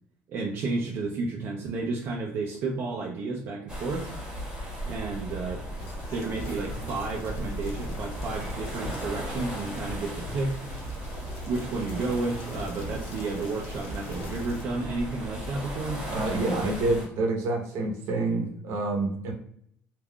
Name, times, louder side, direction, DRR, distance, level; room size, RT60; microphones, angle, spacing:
voice 1, 0.3-4.1 4.9-5.6 6.1-10.5 11.4-16.0, right 3 dB, 45° right, -1 dB, 0.4 m, -31 dB
sound 1, 3.7-17.1, equal, 15° right, 1.2 m, -36 dB
sound 2, 4.6-4.7 5.3-5.7 6.3-6.8 7.2-7.6 8.1-8.5 9.0-9.4 9.8-10.5 10.8-11.3 11.8-12.2 12.8-13.2 13.8-14.3, right 1 dB, 20° left, 0.4 m, -41 dB
sound 3, 5.8-14.6, left 2 dB, 70° left, 0.8 m, -44 dB
voice 2, 16.1-19.3, right 2 dB, 70° right, 2 dB, 0.8 m, -27 dB
3.5 x 2.4 x 2.2 m, 0.68 s
cardioid pair, 165°, 5 cm